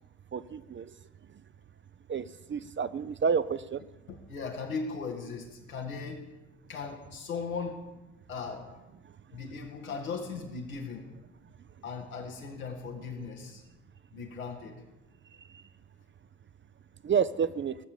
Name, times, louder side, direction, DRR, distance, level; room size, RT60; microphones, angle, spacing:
voice 1, 0.3-0.9 2.1-3.8 17.0-17.8, right 6 dB, 30° right, 14 dB, 0.5 m, -29 dB
voice 2, 4.1-6.3 6.7-7.8 8.3-8.7 9.3-11.1 11.8-13.6 14.1-14.8, left 5 dB, 85° left, 0 dB, 1.7 m, -38 dB
17.0 x 7.1 x 6.9 m, 1.1 s
figure-of-eight pair, 40°, 41 cm